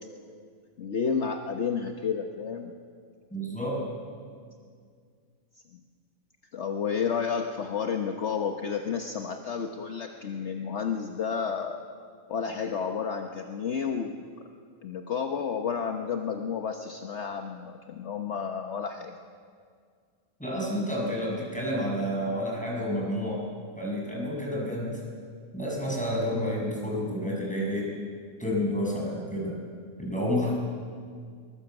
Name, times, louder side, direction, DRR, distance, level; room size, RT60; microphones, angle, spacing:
voice 1, 0.8-2.7 6.5-11.8 12.3-14.2 14.8-19.1, left 6 dB, 55° left, 4 dB, 1.3 m, -31 dB
voice 2, 3.3-3.8 20.4-23.4 23.8-25.0 25.5-27.9 28.4-29.5 30.0-30.5, equal, 5° left, -3 dB, 6.7 m, -29 dB
23.0 x 21.0 x 8.0 m, 2.1 s
omnidirectional pair, 1.4 m